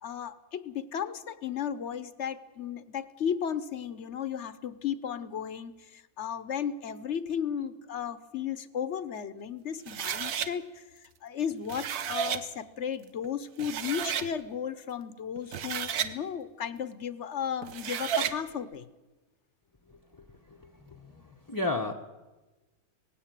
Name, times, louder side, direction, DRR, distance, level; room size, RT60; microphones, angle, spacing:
voice 1, 0.0-10.8 11.2-18.8, left 8 dB, 55° left, 15 dB, 1.1 m, -34 dB
sound 1, 9.9-10.5 11.5-12.4 13.2-13.3 13.6-14.3 15.4-16.1 17.6-18.4, right 9 dB, 85° right, 1.4 m, -32 dB
voice 2, 20.5-21.9, left 2 dB, 15° left, 3 dB, 0.8 m, -34 dB
18.5 x 16.0 x 9.1 m, 1.1 s
omnidirectional pair, 1.5 m